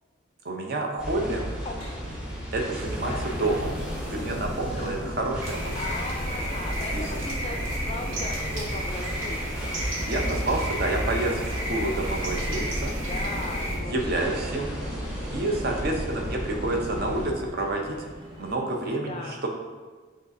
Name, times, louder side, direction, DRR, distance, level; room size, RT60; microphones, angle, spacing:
voice 1, 0.4-1.4 2.5-3.1 3.4-3.8 4.1-5.8 6.9-7.0 10.1-12.9 13.9-14.7 15.3-18.0 18.4-19.5, right 2 dB, 50° right, 2 dB, 0.6 m, -29 dB
sound 1, 1.0-17.3, equal, 5° right, 0.7 m, -32 dB
sound 2, 1.0-18.5, equal, 30° right, 1.1 m, -48 dB
sound 3, 5.4-13.8, equal, 80° right, 0.9 m, -34 dB
voice 2, 5.7-7.6 7.9-9.8 13.1-14.8 15.5-15.9 18.9-19.4, left 2 dB, 30° left, 3 dB, 0.3 m, -38 dB
6.5 x 2.4 x 2.6 m, 1.4 s
head